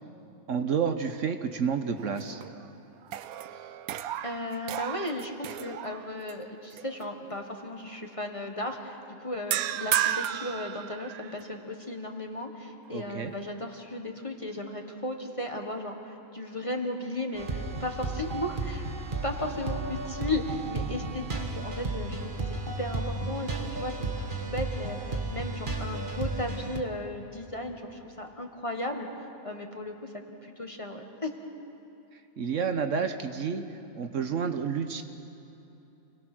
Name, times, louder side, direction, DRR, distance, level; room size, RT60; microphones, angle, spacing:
voice 1, 0.5-2.4 12.9-13.3 32.1-35.0, right 6 dB, 65° right, 7 dB, 1.3 m, -30 dB
sound 1, 2.0-2.7 3.0-6.3 6.8-7.0 9.5-11.4, right 11 dB, 85° right, 1.1 m, -33 dB
voice 2, 4.2-18.8 19.2-24.1 24.4-25.0 25.3-29.1 29.4-31.3, left 1 dB, 25° left, 3 dB, 1.5 m, -35 dB
sound 2, 17.3-26.8, right 2 dB, 35° right, 1.6 m, -33 dB
28.5 x 19.5 x 6.2 m, 3.0 s
omnidirectional pair, 1.5 m